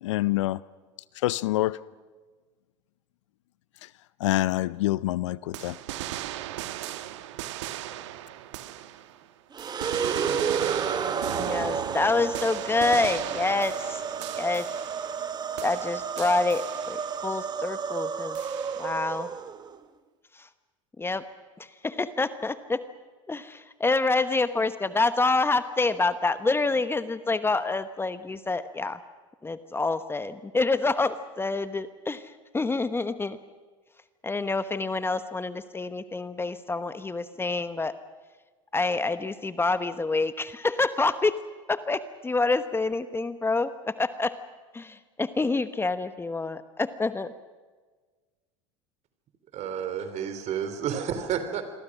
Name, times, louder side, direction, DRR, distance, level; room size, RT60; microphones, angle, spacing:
voice 1, 0.0-0.6 1.2-1.8 4.2-5.8, left 16 dB, 75° left, 0.6 m, -26 dB
sound 1, 5.5-9.2 9.6-15.3 15.6-17.2 18.3-19.1, right 13 dB, 75° right, 1.3 m, -37 dB
sound 2, 9.5-19.8, right 6 dB, 25° right, 1.3 m, -31 dB
voice 2, 11.4-14.0 14.4-14.7 15.6-18.4 18.8-19.3 21.0-21.2 21.8-22.8 23.3-29.0 29.4-32.2 32.5-33.4 34.2-37.9 38.7-41.4 41.7-44.3 44.7-47.3, left 3 dB, 15° left, 1.1 m, -27 dB
voice 3, 49.5-51.6, right 8 dB, 50° right, 3.8 m, -30 dB
27.5 x 22.5 x 6.3 m
hypercardioid pair, 80°, 15 cm